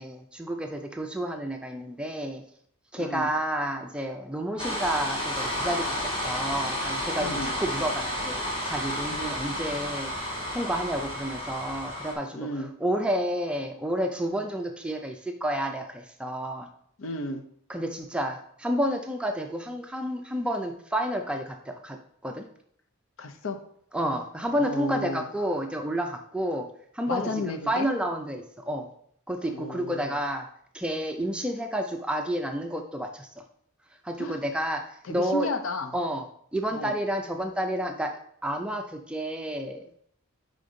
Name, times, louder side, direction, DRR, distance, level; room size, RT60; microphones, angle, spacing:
voice 1, 0.0-2.4 2.9-8.4 8.7-10.1 10.5-16.7 17.7-22.5 23.9-26.7 26.9-28.9 29.3-30.5 30.7-33.4 34.0-35.5 35.9-36.3 36.5-38.2 38.4-39.8, equal, 5° right, 4 dB, 0.4 m, -30 dB
voice 2, 3.0-3.3 7.2-7.5 9.1-9.3 12.3-12.7 17.0-17.4 23.2-23.6 24.6-25.2 27.1-27.9 29.5-30.2 34.2-34.4 35.1-35.9 36.7-37.0, left 2 dB, 65° left, 7 dB, 0.6 m, -33 dB
sound 1, 4.6-12.1, equal, 25° left, 1.3 m, -31 dB
5.3 x 5.0 x 3.8 m, 0.66 s
head